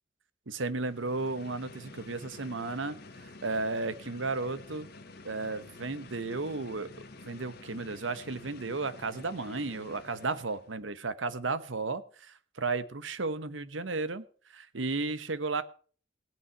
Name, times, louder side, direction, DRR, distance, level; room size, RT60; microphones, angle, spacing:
voice 1, 0.5-4.9 5.2-6.9 7.2-14.2 14.5-15.6, right 3 dB, 90° right, 14 dB, 1.1 m, -34 dB
sound 1, 0.7-10.8, left 3 dB, 55° left, 1.8 m, -50 dB
17.5 x 8.7 x 4.6 m, 0.43 s
head